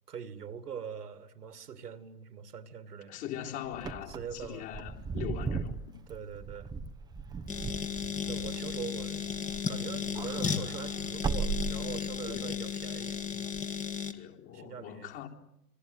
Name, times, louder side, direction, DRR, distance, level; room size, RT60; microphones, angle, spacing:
voice 1, 0.1-3.2 4.1-4.7 6.1-6.7 8.3-9.3 9.7-13.2 14.5-15.1, right 7 dB, 75° right, 2.4 m, -42 dB
voice 2, 3.1-6.0 12.3-12.6 14.1-15.3, left 11 dB, 35° left, 3.9 m, -41 dB
Wind / Car, 3.7-9.6 9.9-12.3, right 4 dB, 10° right, 1.0 m, -37 dB
sound 1, 7.5-14.1, left 7 dB, 15° left, 1.8 m, -34 dB
27.5 x 22.5 x 8.0 m
figure-of-eight pair, 110°, 47 cm